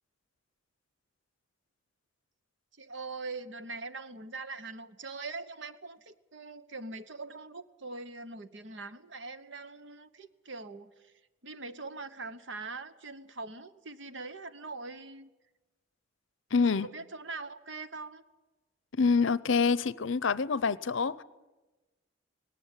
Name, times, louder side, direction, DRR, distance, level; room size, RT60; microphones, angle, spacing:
voice 1, 2.8-11.1 11.4-15.3 16.8-18.2, right 3 dB, 60° right, 1.1 m, -42 dB
voice 2, 16.5-16.9 18.9-21.2, left 5 dB, 65° left, 0.6 m, -26 dB
19.0 x 18.0 x 10.0 m
head